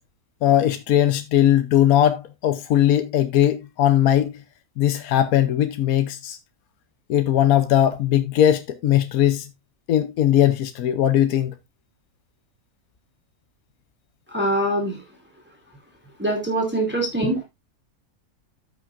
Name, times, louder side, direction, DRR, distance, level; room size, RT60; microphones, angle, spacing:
voice 1, 0.4-4.3 4.8-6.4 7.1-9.5 9.9-11.5, left 11 dB, 80° left, 1.3 m, -19 dB
voice 2, 14.3-15.0 16.2-17.4, right 1 dB, 5° right, 2.7 m, -23 dB
14.5 x 5.9 x 2.5 m
omnidirectional pair, 1.5 m